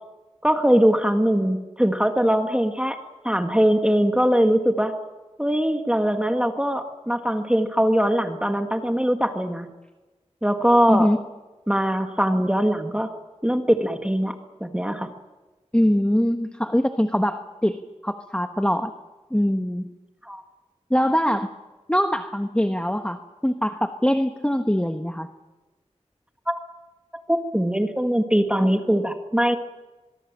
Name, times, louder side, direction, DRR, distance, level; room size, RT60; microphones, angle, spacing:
voice 1, 0.4-3.0 3.2-5.0 5.4-9.7 10.4-11.1 11.7-13.1 13.4-14.4 14.6-15.1 20.3-20.4 26.5-26.6 27.3-29.6, equal, 10° right, 5 dB, 1.8 m, -21 dB
voice 2, 10.9-11.2 15.7-18.9 19.3-19.9 20.9-21.5 21.9-25.3, equal, 10° left, 7 dB, 1.2 m, -23 dB
23.5 x 22.5 x 7.4 m, 1.2 s
wide cardioid pair, 60°, 12 cm